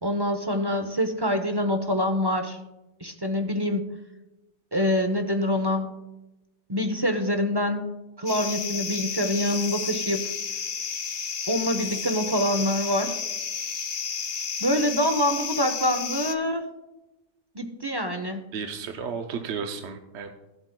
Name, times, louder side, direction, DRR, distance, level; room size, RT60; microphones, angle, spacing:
voice 1, 0.0-2.6 3.0-3.9 4.7-6.0 6.7-7.8 8.2-10.3 11.5-13.2 14.6-16.7 17.5-18.4, left 1 dB, 30° right, 6 dB, 0.5 m, -25 dB
sound 1, 8.3-16.4, left 6 dB, 50° left, 0.7 m, -32 dB
voice 2, 18.5-20.3, right 6 dB, 75° right, 5 dB, 1.0 m, -33 dB
16.0 x 7.8 x 2.2 m, 1.0 s
omnidirectional pair, 1.2 m